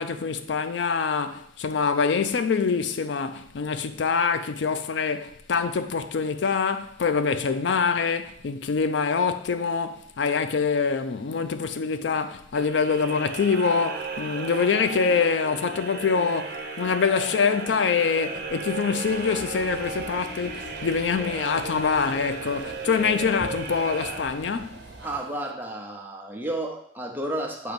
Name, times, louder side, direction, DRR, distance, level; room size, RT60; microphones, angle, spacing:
voice 1, 0.0-24.8, left 5 dB, 80° left, 0.4 m, -25 dB
sound 1, 12.5-24.8, right 4 dB, 55° right, 1.0 m, -35 dB
sound 2, 19.0-25.2, right 2 dB, 75° right, 0.8 m, -43 dB
voice 2, 25.0-27.7, right 1 dB, 10° right, 0.8 m, -32 dB
7.5 x 2.9 x 5.2 m
head